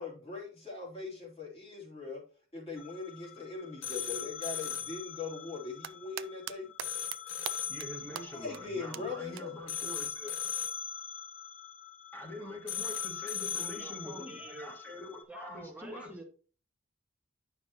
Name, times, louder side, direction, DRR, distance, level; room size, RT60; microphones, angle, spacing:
voice 1, 0.0-2.2 2.5-6.7 8.1-9.5, left 4 dB, 30° left, -3 dB, 3.1 m, -41 dB
sound 1, 2.8-15.2, left 8 dB, 70° left, 0.9 m, -40 dB
sound 2, 5.6-6.5 6.8-7.2 7.5-7.9 8.2-8.3 8.5-8.6 8.9-9.0 9.4-9.5 11.0-11.1, right 11 dB, 65° right, 0.4 m, -39 dB
voice 2, 7.7-10.4 12.1-16.1, left 1 dB, 10° left, 1 dB, 1.8 m, -44 dB
voice 3, 13.5-14.7 15.3-16.2, right 1 dB, 5° right, 1 dB, 1.2 m, -47 dB
9.2 x 6.0 x 2.9 m, 0.39 s
head